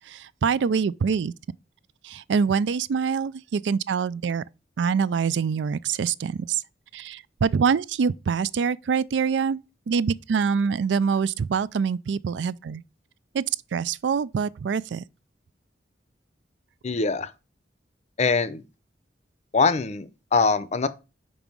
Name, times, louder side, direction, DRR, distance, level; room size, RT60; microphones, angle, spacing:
voice 1, 0.1-1.3 2.0-4.4 4.8-6.6 6.9-9.6 9.9-12.8 13.3-13.4 13.7-15.0, right 6 dB, 85° right, 0.4 m, -25 dB
voice 2, 16.8-17.3 18.2-18.6 19.5-20.9, left 4 dB, 40° left, 0.6 m, -23 dB
5.4 x 4.9 x 6.0 m
head